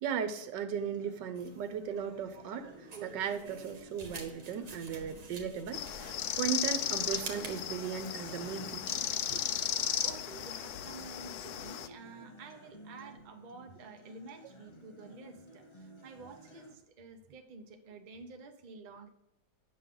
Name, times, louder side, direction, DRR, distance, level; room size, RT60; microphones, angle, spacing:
voice 1, 0.0-5.8 6.4-9.0 9.3-9.4, right 7 dB, 85° right, 9 dB, 1.5 m, -36 dB
Acoustic guitar, 0.7-16.7, left 1 dB, 30° left, 0.5 m, -54 dB
sound 1, 1.4-7.6, right 4 dB, 65° right, 1.8 m, -49 dB
sound 2, 5.7-11.9, left 10 dB, 75° left, 0.7 m, -35 dB
voice 2, 10.0-19.1, right 3 dB, 40° right, 5 dB, 0.7 m, -50 dB
9.5 x 6.3 x 3.7 m, 0.89 s
omnidirectional pair, 1.9 m